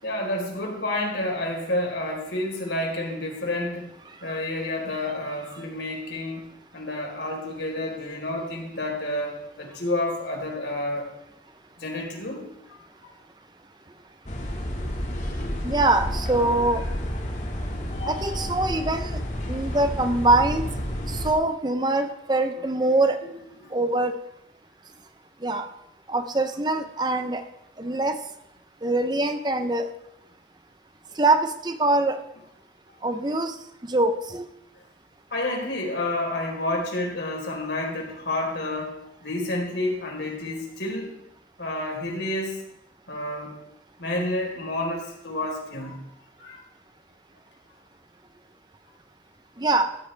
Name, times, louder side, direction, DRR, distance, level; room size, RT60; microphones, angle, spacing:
voice 1, 0.0-3.9 4.2-6.4 6.7-11.1 11.8-12.8 13.0-13.1 22.5-22.6 23.2-23.3 23.6-23.7 35.3-38.9 39.2-41.1 41.6-42.6 43.1-43.5 44.0-46.0 46.4-46.6, left 1 dB, 90° left, -1 dB, 4.1 m, -29 dB
sound 1, 14.3-21.3, equal, 40° left, 1.9 m, -30 dB
voice 2, 15.6-16.8 18.1-19.2 19.5-20.6 21.1-23.2 23.7-24.2 25.4-25.7 26.1-27.4 27.8-28.2 28.8-29.9 31.2-32.2 33.0-33.5 33.9-34.5 49.6-49.9, right 2 dB, 25° right, 8 dB, 0.7 m, -23 dB
14.5 x 14.0 x 3.4 m, 0.80 s
head